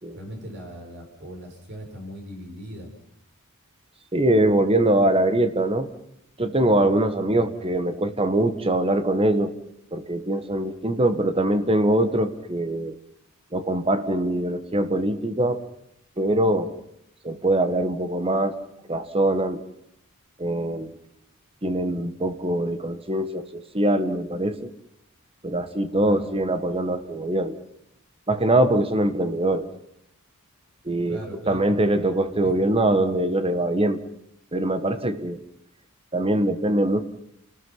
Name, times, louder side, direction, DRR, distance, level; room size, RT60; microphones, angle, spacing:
voice 1, 0.1-2.9 7.2-7.5 26.0-26.2 31.0-31.7 32.4-32.5, equal, 50° right, 2 dB, 6.6 m, -39 dB
voice 2, 4.1-5.9 6.4-9.5 9.9-13.0 13.5-15.6 16.2-16.8 17.2-19.6 20.4-21.0 21.6-24.7 25.4-27.6 28.3-29.7 30.8-31.2 31.5-34.0 34.5-35.4 36.1-37.0, right 1 dB, 25° right, 9 dB, 1.8 m, -23 dB
29.5 x 19.5 x 5.7 m, 0.74 s
head